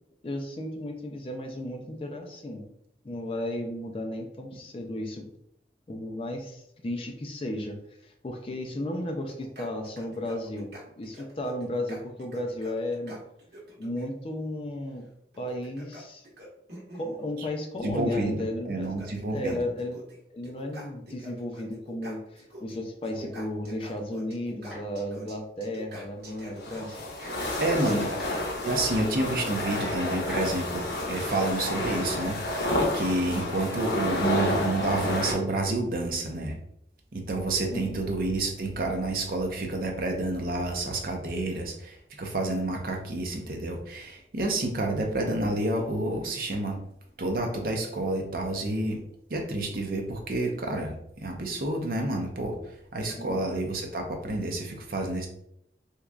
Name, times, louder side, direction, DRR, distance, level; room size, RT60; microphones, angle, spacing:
voice 1, 0.2-2.7 3.0-5.3 5.9-13.2 13.8-15.0 15.4-16.2 16.9-18.9 19.3-20.0 20.3-27.0 27.5-27.6 27.9-28.1 37.7-38.0 53.1-53.4, left 1 dB, 30° left, 3 dB, 0.4 m, -34 dB
sound 1, 9.3-14.1 15.3-17.2 18.2-18.3 18.7-20.2 20.4-22.8 23.0-28.4, equal, 70° right, 1.1 m, -46 dB
voice 2, 17.8-19.6 27.6-28.1 28.6-36.6 37.1-46.8 47.2-49.0 49.3-55.3, right 2 dB, 55° right, 2 dB, 0.6 m, -29 dB
sound 2, 24.7-25.2 27.3-27.8 28.8-28.9 30.1-30.9 33.1-33.5 34.7-35.1, right 1 dB, 5° right, 0.9 m, -47 dB
sound 3, 26.3-35.3, left 1 dB, 75° left, 0.8 m, -30 dB
3.6 x 3.0 x 2.3 m, 0.75 s
head